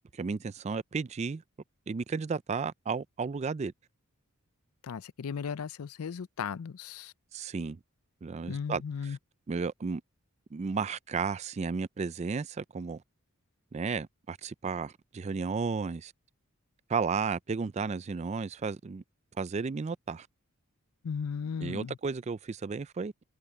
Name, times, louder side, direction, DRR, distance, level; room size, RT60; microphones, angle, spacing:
voice 1, 0.1-1.4 1.9-3.7 7.3-7.8 8.2-9.2 9.5-10.0 10.5-13.0 13.7-16.1 16.9-19.0 19.4-20.3 21.6-23.1, right 5 dB, 30° right, 0.3 m, -33 dB
voice 2, 4.8-7.1 8.5-9.2 21.0-22.0, left 6 dB, 75° left, 0.5 m, -36 dB
head